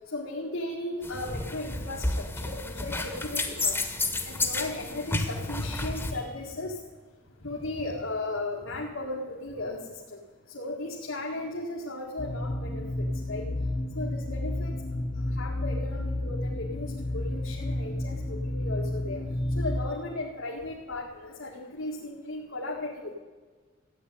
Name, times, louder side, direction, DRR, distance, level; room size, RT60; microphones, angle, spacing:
voice 1, 0.1-3.8 4.2-6.7 7.4-9.8 10.1-10.2 10.5-13.5 14.0-14.7 15.4-19.2 19.5-23.2, left 2 dB, 75° left, -4 dB, 2.0 m, -36 dB
sound 1, 1.0-6.1, left 2 dB, 10° left, 1.3 m, -31 dB
sound 2, 12.2-19.8, left 1 dB, 30° left, 1.0 m, -31 dB
14.0 x 8.9 x 9.9 m, 1.4 s
head